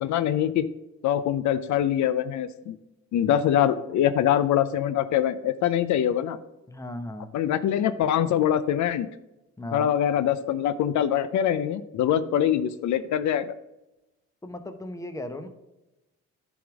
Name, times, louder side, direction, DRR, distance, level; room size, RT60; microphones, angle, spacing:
voice 1, 0.0-0.7 1.0-2.8 3.1-6.4 7.3-9.1 9.7-13.5, left 10 dB, 70° left, 12 dB, 0.5 m, -24 dB
voice 2, 6.7-7.3 9.6-9.9 14.4-15.5, left 1 dB, 10° left, 7 dB, 0.9 m, -36 dB
10.0 x 3.5 x 6.0 m, 0.96 s
cardioid pair, 90°, 30 cm